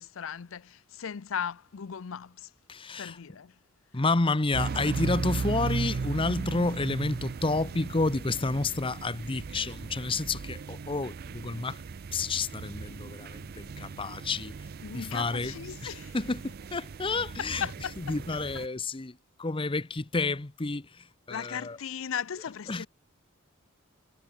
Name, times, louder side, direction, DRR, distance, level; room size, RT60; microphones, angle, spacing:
voice 1, 0.0-2.5 3.0-3.5 14.8-16.2 17.4-18.2 18.5-18.6 21.3-22.9, left 7 dB, 70° left, 0.5 m, -37 dB
voice 2, 2.7-3.2 3.9-11.8 12.1-14.5 14.9-15.5 15.8-17.7 18.1-21.8 22.7-22.9, left 3 dB, 25° left, 0.7 m, -30 dB
sound 1, 4.5-18.7, right 4 dB, 45° right, 0.4 m, -37 dB
head